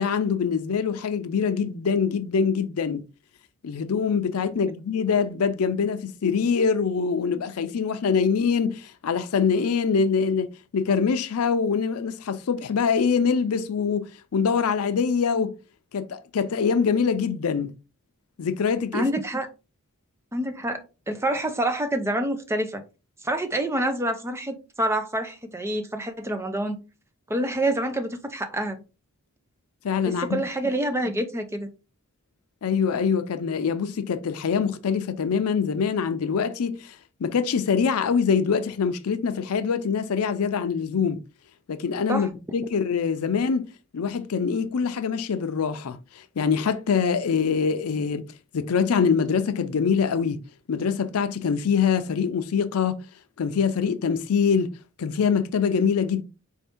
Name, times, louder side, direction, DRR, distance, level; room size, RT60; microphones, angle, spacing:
voice 1, 0.0-3.0 3.6-15.5 15.9-17.8 18.4-19.1 29.8-30.5 32.6-41.2 41.7-43.7 43.9-48.3 48.5-50.4 50.7-53.0 53.4-54.7 55.0-56.2, left 6 dB, 90° left, 0.5 m, -24 dB
voice 2, 18.9-19.5 20.3-22.8 23.2-26.8 27.3-28.8 30.1-31.7 42.1-42.3, right 1 dB, 10° right, 0.5 m, -27 dB
4.1 x 2.7 x 3.4 m
head